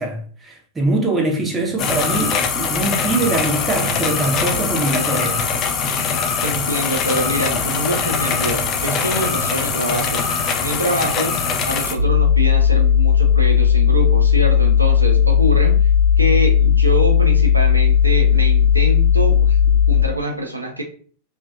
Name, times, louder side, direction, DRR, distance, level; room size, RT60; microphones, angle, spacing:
voice 1, 0.0-5.4, right 2 dB, 15° right, 0.6 m, -22 dB
sound 1, 1.8-11.9, left 5 dB, 35° left, 0.3 m, -22 dB
voice 2, 6.4-10.3 10.6-11.3 11.7-15.9 16.2-20.8, right 1 dB, 85° right, 0.4 m, -25 dB
sound 2, 12.0-20.0, left 8 dB, 90° left, 0.9 m, -15 dB
2.4 x 2.2 x 2.4 m
figure-of-eight pair, 90°, 0 cm